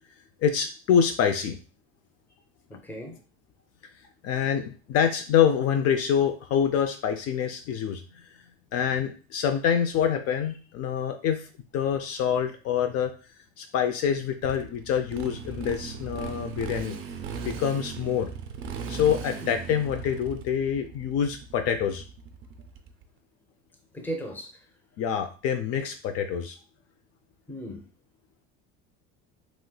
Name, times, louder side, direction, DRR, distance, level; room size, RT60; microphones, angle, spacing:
voice 1, 0.4-1.6 4.2-8.0 8.7-11.4 11.7-13.1 13.6-17.0 17.4-18.3 18.9-22.0 25.0-26.6, left 8 dB, 55° left, 0.5 m, -26 dB
voice 2, 2.7-3.2 19.4-19.5 23.9-24.5 27.5-27.9, right 1 dB, 5° left, 0.6 m, -36 dB
Motorcycle, 14.4-23.0, right 6 dB, 45° right, 0.4 m, -38 dB
3.0 x 2.9 x 2.2 m
supercardioid pair, 110°, 30 cm